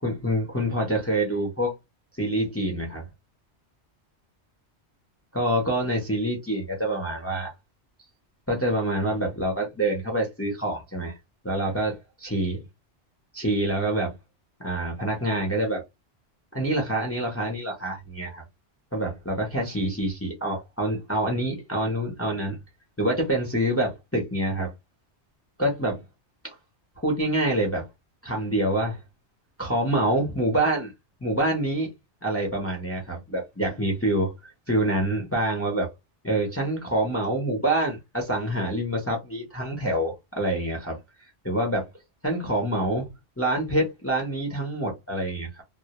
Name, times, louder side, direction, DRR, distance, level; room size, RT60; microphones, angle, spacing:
voice 1, 0.0-1.7 2.2-3.0 5.3-7.5 8.5-11.2 11.4-12.6 13.3-14.1 14.6-15.8 16.5-18.4 18.9-22.6 23.0-24.7 25.6-26.0 26.4-26.5 27.0-27.9 28.2-29.0 29.6-30.9 31.2-31.9 32.2-35.9 36.2-41.0 41.4-41.9 42.2-43.1 43.4-45.6, right 1 dB, 15° left, 0.6 m, -26 dB
2.1 x 2.0 x 2.9 m
omnidirectional pair, 1.2 m